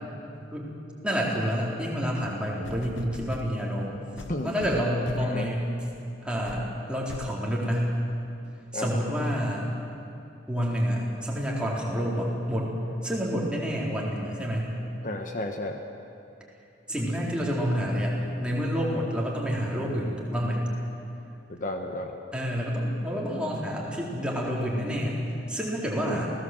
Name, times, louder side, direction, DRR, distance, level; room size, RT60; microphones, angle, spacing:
voice 1, 1.0-3.9 4.4-5.6 6.2-8.0 8.7-9.7 10.5-12.7 13.0-14.7 16.9-20.7 22.3-25.2 25.5-26.3, equal, 5° right, -4 dB, 4.1 m, -28 dB
sound 1, 2.6-3.5 4.2-5.4 5.9-6.1 6.5-6.7 7.1-7.4 8.1-8.2, left 3 dB, 90° left, 0.8 m, -40 dB
voice 2, 5.2-5.5 8.7-8.9 15.0-15.8 21.5-22.2 26.0-26.2, left 1 dB, 45° left, 4 dB, 1.3 m, -32 dB
28.0 x 17.5 x 7.9 m, 2.7 s
head